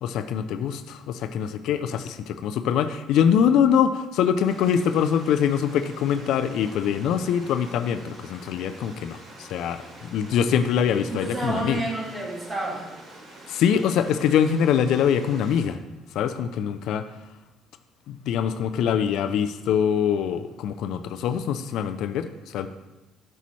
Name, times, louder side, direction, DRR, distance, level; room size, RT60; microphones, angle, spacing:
voice 1, 0.0-11.8 13.5-15.8 16.1-17.1 18.1-22.7, left 8 dB, 75° left, 10 dB, 0.4 m, -24 dB
Stream, 4.4-15.6, right 1 dB, 60° right, 2.6 m, -46 dB
voice 2, 11.1-12.9, right 2 dB, 20° right, -3 dB, 2.0 m, -29 dB
8.3 x 5.5 x 3.1 m, 1.0 s
cardioid pair, 100°, 0 cm